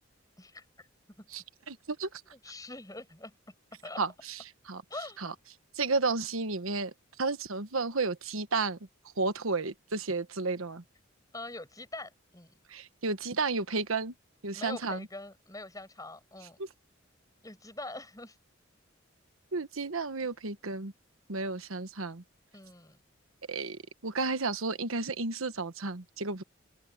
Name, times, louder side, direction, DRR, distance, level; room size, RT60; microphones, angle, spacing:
voice 1, 0.4-0.9 1.2-1.3 2.3-3.3 3.8-4.0 4.9-5.2 11.3-12.5 14.5-16.6 17.4-18.4 22.5-23.0, left 2 dB, 15° left, 6.9 m, -43 dB
voice 2, 1.3-2.1 4.0-4.4 4.7-4.8 5.2-5.3 5.8-6.9 7.2-8.8 9.2-10.8 12.7-14.1 14.4-15.1 16.6-16.7 19.5-20.9 21.3-22.2 23.5-26.4, right 3 dB, 85° right, 1.3 m, -32 dB
open air
head